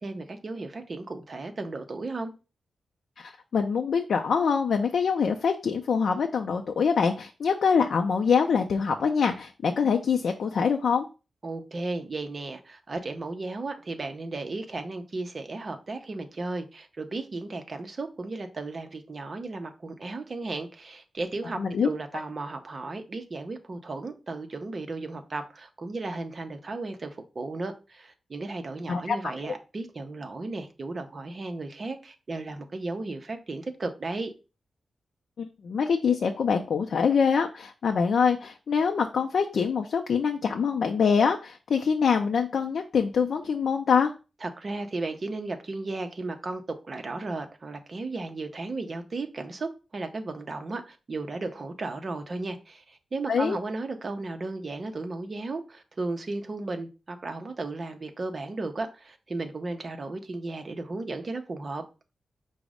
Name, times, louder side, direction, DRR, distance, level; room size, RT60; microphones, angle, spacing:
voice 1, 0.0-2.3 11.4-34.3 44.4-61.8, right 3 dB, 35° right, 6 dB, 0.6 m, -35 dB
voice 2, 3.2-11.1 21.6-21.9 28.9-29.2 35.4-44.1 53.3-53.6, left 6 dB, 70° left, 3 dB, 0.4 m, -24 dB
5.0 x 2.0 x 4.8 m, 0.31 s
wide cardioid pair, 175°, 0 cm